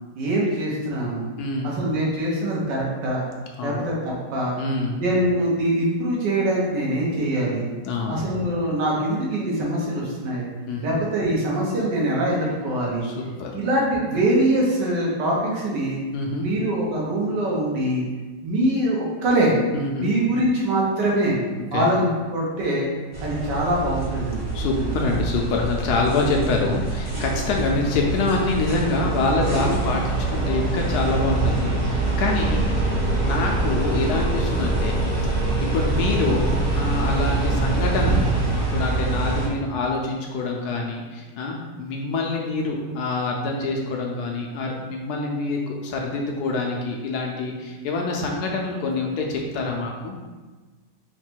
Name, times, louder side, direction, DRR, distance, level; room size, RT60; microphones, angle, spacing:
voice 1, 0.2-1.2 1.6-3.2 3.6-4.5 5.0-7.7 8.1-10.4 10.8-13.1 13.5-16.0 16.4-18.0 18.4-19.5 20.0-21.4 21.7-22.9 23.2-24.9, right 1 dB, 80° right, -4 dB, 1.6 m, -23 dB
voice 2, 1.4-1.8 3.6-3.8 4.6-5.0 7.8-8.2 10.7-11.0 13.0-13.5 16.1-16.5 19.7-20.1 21.6-21.9 24.5-35.0 35.6-38.2 38.7-50.2, left 3 dB, 70° left, 0 dB, 1.0 m, -26 dB
sound 1, 23.1-39.5, right 2 dB, 15° right, 0.7 m, -24 dB
4.0 x 2.2 x 4.4 m, 1.3 s
omnidirectional pair, 1.9 m